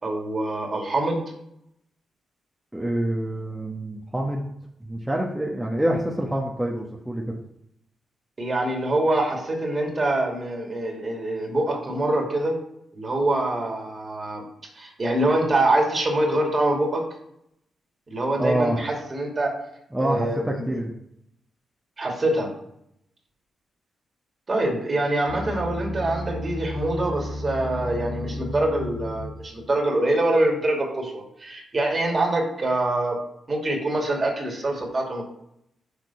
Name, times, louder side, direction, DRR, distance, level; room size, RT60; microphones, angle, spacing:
voice 1, 0.0-1.2 8.4-12.6 12.9-14.5 14.7-17.0 18.1-19.5 20.0-20.7 22.0-22.5 24.5-33.2 33.5-35.2, right 1 dB, 40° right, 1 dB, 2.5 m, -24 dB
voice 2, 2.7-4.5 4.8-7.2 18.4-18.8 19.9-20.9, right 1 dB, 10° right, -2 dB, 1.3 m, -26 dB
sound 1, 25.3-29.7, left 1 dB, 65° left, 1.9 m, -33 dB
6.8 x 4.4 x 5.6 m, 0.77 s
hypercardioid pair, 40°, 0 cm